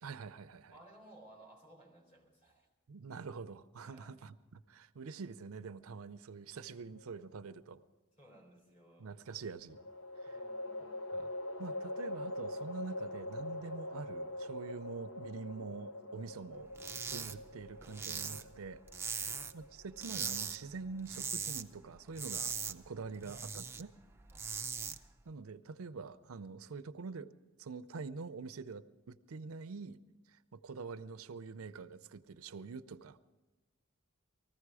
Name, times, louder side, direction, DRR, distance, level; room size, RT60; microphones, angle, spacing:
voice 1, 0.0-0.8 2.9-7.8 9.0-9.8 10.2-10.4 11.1-11.3 11.6-18.8 19.1-23.9 25.3-27.3 27.6-30.0 30.3-33.2, right 4 dB, 85° right, 13 dB, 0.6 m, -46 dB
voice 2, 0.7-2.7 3.9-4.2 8.2-9.1 10.3-11.1 16.2-16.3 19.1-19.5 24.3-24.5, right 1 dB, 35° left, 1 dB, 4.0 m, -60 dB
sound 1, 6.6-7.4 9.7-21.0, left 1 dB, 75° left, 0.7 m, -44 dB
sound 2, 16.7-17.3 17.6-19.6 20.0-20.6 20.9-21.6 22.0-23.8 24.2-25.0, right 5 dB, 10° right, 0.5 m, -40 dB
20.0 x 14.5 x 4.8 m, 1.1 s
head